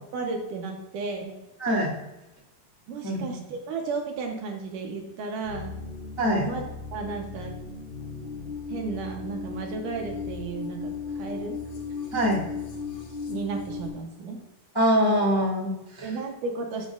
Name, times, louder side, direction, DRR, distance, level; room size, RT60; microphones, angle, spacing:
voice 1, 0.1-1.4 2.9-5.7 6.2-6.6 6.9-7.5 8.7-11.6 13.3-14.4 16.0-16.9, right 4 dB, 70° right, 2 dB, 2.3 m, -33 dB
voice 2, 1.6-1.9 3.0-3.4 6.2-6.5 12.1-12.4 14.7-16.1, equal, 10° left, -6 dB, 1.1 m, -24 dB
sound 1, 5.4-13.9, left 4 dB, 55° left, 2.6 m, -36 dB
11.5 x 7.4 x 2.4 m, 1.0 s
omnidirectional pair, 4.2 m